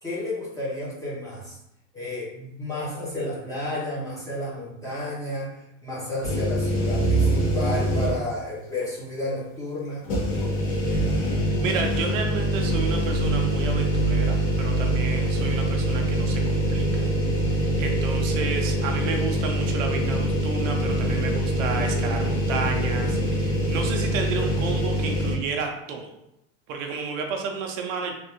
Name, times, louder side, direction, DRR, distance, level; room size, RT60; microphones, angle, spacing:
voice 1, 0.0-1.6 1.9-10.0, left 1 dB, 10° left, -7 dB, 0.8 m, -32 dB
sound 1, 6.2-8.4 8.8-8.9 10.0-25.4, right 1 dB, 45° left, 1.4 m, -24 dB
voice 2, 11.6-17.1 17.4-26.1 26.7-28.1, right 5 dB, 70° right, 3 dB, 0.7 m, -32 dB
3.3 x 2.5 x 2.9 m, 0.82 s
supercardioid pair, 150°, 40 cm